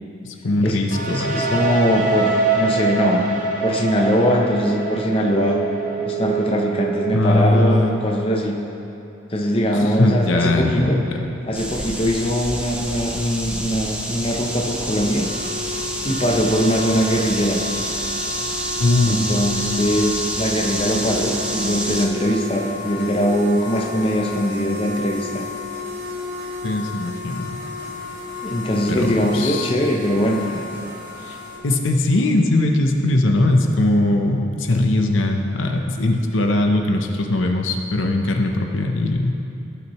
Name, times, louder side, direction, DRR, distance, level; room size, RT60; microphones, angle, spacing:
voice 1, 0.2-1.4 7.1-8.0 9.7-11.3 18.8-19.3 19.5-19.8 26.6-27.6 28.9-29.7 31.2-39.4, left 2 dB, 85° left, 3 dB, 0.8 m, -20 dB
sound 1, 0.9-8.6, right 3 dB, 45° right, 0.9 m, -24 dB
voice 2, 1.1-3.3 3.6-5.6 6.0-8.6 9.3-11.0 11.4-15.3 16.0-17.6 19.0-25.5 28.4-30.7, equal, 30° left, 0 dB, 0.7 m, -21 dB
sound 2, 11.5-22.1, right 1 dB, 5° right, 0.5 m, -28 dB
sound 3, 14.7-31.6, left 3 dB, 80° right, 1.9 m, -33 dB
15.5 x 5.8 x 3.1 m, 2.9 s
head